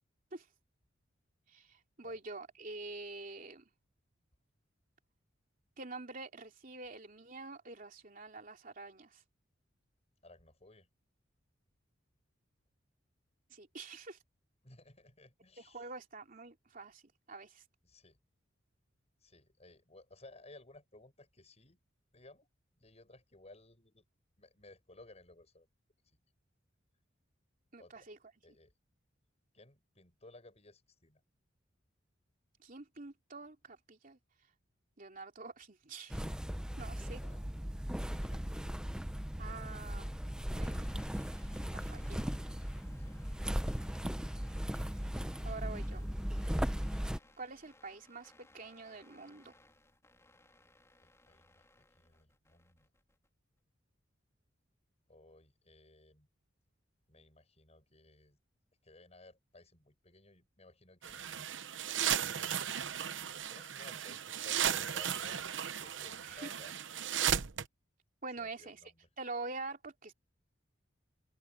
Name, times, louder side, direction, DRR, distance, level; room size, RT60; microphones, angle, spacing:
voice 1, 1.5-3.6 5.8-9.2 13.5-14.2 15.6-17.0 17.3-17.6 27.7-28.2 32.6-34.2 35.0-36.3 36.8-37.2 39.4-40.1 40.5-40.9 41.7-42.2 45.4-46.0 47.4-49.5 66.2-66.5 68.2-68.8 69.2-70.1, right 3 dB, 45° right, 3.0 m, -46 dB
voice 2, 10.2-10.9 14.6-15.9 17.8-18.2 19.2-21.8 22.1-22.5 22.8-24.0 24.4-25.7 26.0-26.2 27.8-28.1 28.4-28.7 29.5-31.2 37.2-37.4 38.1-38.7 43.0-43.3 45.9-46.2 51.0-52.9 55.1-56.3 57.1-58.4 58.8-61.6 63.4-65.4 65.8-66.7 68.4-69.1, left 2 dB, 35° left, 7.7 m, -58 dB
sound 1, 36.1-47.2, equal, 5° right, 0.6 m, -37 dB
sound 2, 40.5-53.3, left 1 dB, 15° left, 3.5 m, -63 dB
sound 3, 61.0-67.7, right 9 dB, 70° right, 0.9 m, -35 dB
open air
head